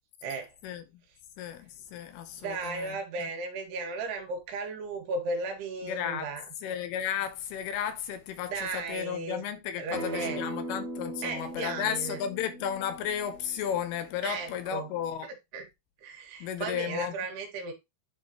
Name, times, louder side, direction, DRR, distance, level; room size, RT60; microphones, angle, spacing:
voice 1, 0.2-0.5 2.4-6.4 8.5-9.4 9.8-10.4 11.2-12.2 14.2-14.9 15.5-15.7 16.0-17.7, right 3 dB, 90° right, 3.7 m, -35 dB
voice 2, 1.4-3.3 5.8-6.3 6.6-15.3 16.4-17.2, left 9 dB, 80° left, 2.7 m, -34 dB
Acoustic guitar, 9.9-15.1, right 1 dB, 25° right, 2.0 m, -40 dB
10.5 x 3.9 x 3.0 m
omnidirectional pair, 4.6 m